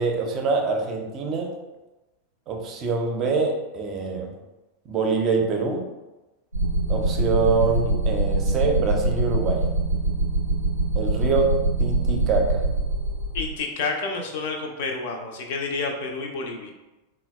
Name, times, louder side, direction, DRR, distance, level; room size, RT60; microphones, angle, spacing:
voice 1, 0.0-1.5 2.5-4.3 4.9-5.8 6.9-9.6 11.0-12.6, right 4 dB, 30° right, 2 dB, 0.5 m, -25 dB
sound 1, 6.5-13.5, right 2 dB, 90° right, 0.4 m, -24 dB
voice 2, 13.3-16.7, left 3 dB, 50° left, 2 dB, 0.5 m, -29 dB
3.8 x 2.1 x 2.3 m, 1.1 s
figure-of-eight pair, 90°, 0 cm